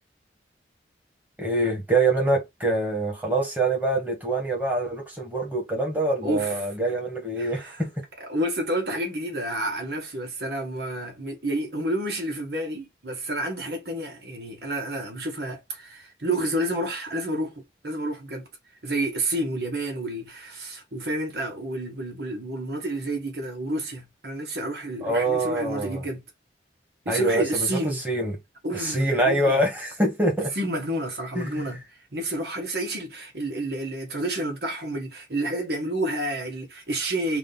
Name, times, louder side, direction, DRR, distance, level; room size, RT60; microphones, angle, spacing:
voice 1, 1.4-8.0 25.0-26.0 27.1-28.4 28.7-30.5 31.3-31.7, right 2 dB, 10° right, 1.7 m, -25 dB
voice 2, 6.2-6.6 7.4-7.8 8.2-18.4 18.8-26.2 27.0-28.0 28.6-29.6 30.5-37.4, right 1 dB, 70° right, 1.4 m, -30 dB
4.9 x 2.7 x 4.0 m
head